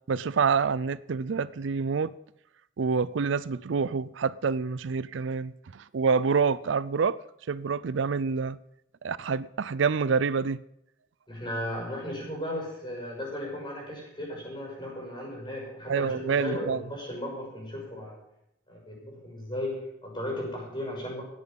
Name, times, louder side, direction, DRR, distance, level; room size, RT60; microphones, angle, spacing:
voice 1, 0.1-2.1 2.8-7.2 7.5-8.6 9.0-10.6 15.9-16.8, right 5 dB, 80° right, 0.5 m, -27 dB
voice 2, 11.3-18.2 18.7-21.2, left 1 dB, 25° left, 6.3 m, -36 dB
18.0 x 8.3 x 5.3 m
head